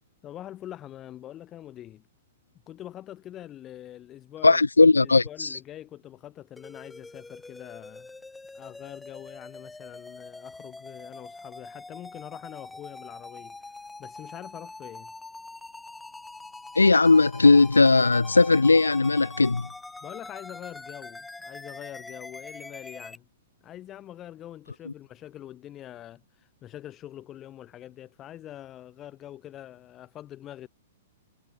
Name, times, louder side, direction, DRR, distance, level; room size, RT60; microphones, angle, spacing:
voice 1, 0.2-2.1 2.7-4.6 5.0-8.1 8.5-13.6 14.0-15.1 20.0-23.3 23.6-30.7, left 12 dB, 25° left, 5.4 m, -44 dB
voice 2, 4.4-5.6 16.8-19.7, left 3 dB, 85° left, 0.3 m, -18 dB
beam square, 6.6-23.2, left 3 dB, 5° left, 2.8 m, -44 dB
figure-of-eight pair, 110°, 0 cm